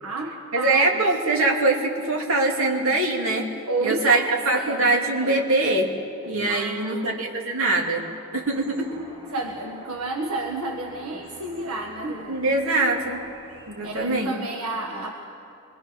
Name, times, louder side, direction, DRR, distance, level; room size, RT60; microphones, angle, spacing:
voice 1, 0.0-0.9 3.7-5.4 6.5-7.2 9.3-12.4 13.8-15.1, right 2 dB, 85° right, 1 dB, 1.7 m, -31 dB
voice 2, 0.5-3.5 3.8-5.9 6.3-8.1 8.3-8.9 12.3-13.2 13.7-14.3, right 2 dB, 65° right, 0 dB, 3.0 m, -23 dB
sound 1, 8.3-14.1, equal, 25° right, 6.2 m, -46 dB
25.5 x 22.0 x 6.3 m, 2.6 s
head